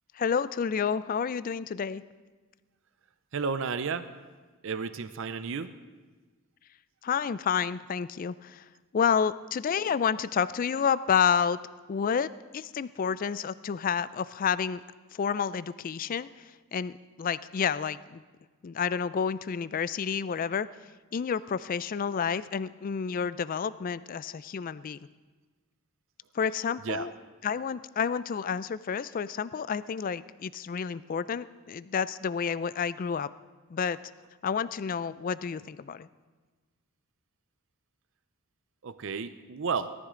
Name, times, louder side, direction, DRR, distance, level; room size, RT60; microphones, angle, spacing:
voice 1, 0.1-2.0 7.0-8.6 8.9-11.6 11.9-14.8 15.1-18.2 18.6-20.7 21.1-25.0 26.3-27.1 27.4-33.3 33.7-34.0 34.4-36.1, left 7 dB, 40° left, 16 dB, 0.3 m, -30 dB
voice 2, 3.3-4.2 4.6-5.7 26.8-27.1 38.8-39.9, right 5 dB, 60° right, 12 dB, 0.5 m, -32 dB
18.0 x 13.0 x 3.8 m, 1.4 s
head